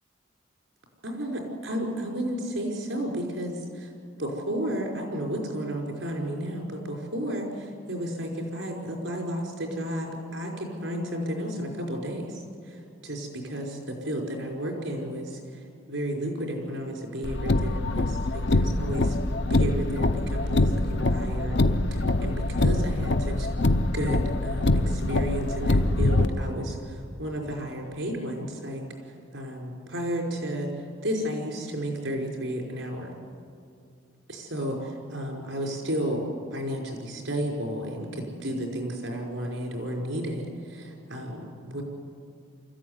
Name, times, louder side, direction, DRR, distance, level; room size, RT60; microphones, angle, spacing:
voice 1, 1.0-3.9 4.2-12.3 12.7-15.4 15.9-19.1 19.5-21.6 21.9-23.5 23.9-28.8 29.3-30.7 31.0-33.1 34.3-36.2 36.5-41.8, equal, 80° right, 1 dB, 5.3 m, -32 dB
Car, 17.2-26.3, left 2 dB, 60° left, 0.8 m, -24 dB
25.0 x 14.5 x 9.7 m, 2.4 s
head